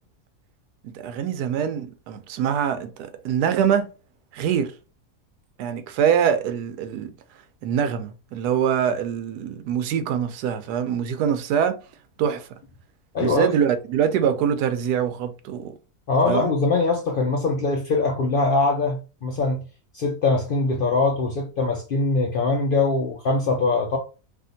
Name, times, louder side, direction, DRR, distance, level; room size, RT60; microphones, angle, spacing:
voice 1, 0.8-3.9 4.3-4.7 5.6-7.1 7.6-11.8 12.2-12.5 13.2-15.7 16.3-16.5, right 8 dB, 90° right, 1.1 m, -24 dB
voice 2, 13.1-13.5 16.1-19.6 19.9-24.0, left 3 dB, 80° left, 0.4 m, -22 dB
3.5 x 2.4 x 2.6 m
omnidirectional pair, 1.6 m